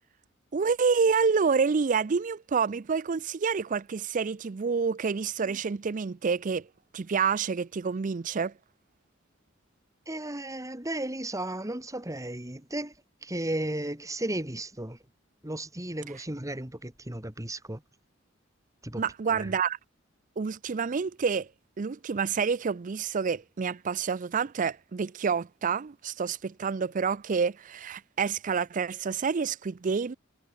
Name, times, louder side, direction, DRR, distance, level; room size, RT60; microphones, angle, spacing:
voice 1, 0.5-6.7 6.9-8.5 19.0-19.8 20.4-21.5 21.8-30.1, right 5 dB, 40° right, 0.4 m, -28 dB
voice 2, 10.1-12.9 13.2-15.0 15.4-17.8 18.8-19.6, right 1 dB, 15° right, 2.2 m, -34 dB
head